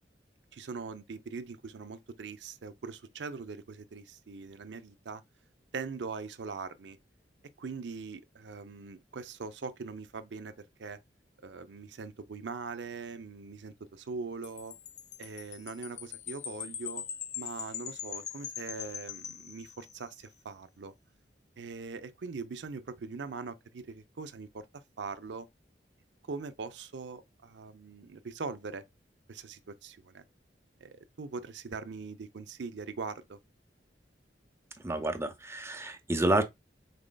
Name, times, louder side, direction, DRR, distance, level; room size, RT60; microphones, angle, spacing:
voice 1, 0.5-5.2 5.7-7.0 7.6-11.0 11.4-14.7 15.2-17.0 17.4-20.9 21.6-25.5 26.3-28.8 29.3-30.2 30.8-33.4, right 4 dB, 75° right, 0.5 m, -41 dB
Wind chime, 14.4-20.1, left 9 dB, 40° left, 0.4 m, -42 dB
voice 2, 34.8-36.4, right 1 dB, 15° right, 0.7 m, -29 dB
5.1 x 4.1 x 2.2 m
head